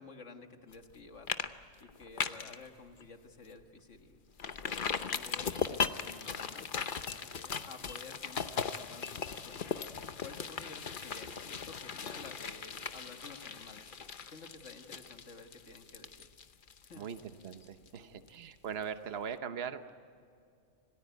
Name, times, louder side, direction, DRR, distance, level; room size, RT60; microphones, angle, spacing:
voice 1, 0.0-1.3 1.8-4.2 5.1-9.7 10.0-13.9 14.3-16.3 16.9-17.1 18.0-18.3, left 3 dB, 80° left, 6 dB, 2.0 m, -52 dB
sound 1, 0.7-1.0 1.3-1.5 1.8-2.6 3.0-3.1 3.5-3.6 4.4-18.0 18.3-18.4, left 6 dB, 45° left, 1.0 m, -38 dB
voice 2, 16.9-19.9, right 7 dB, 60° right, 9 dB, 1.2 m, -40 dB
26.5 x 18.5 x 9.3 m, 2.3 s
omnidirectional pair, 1.2 m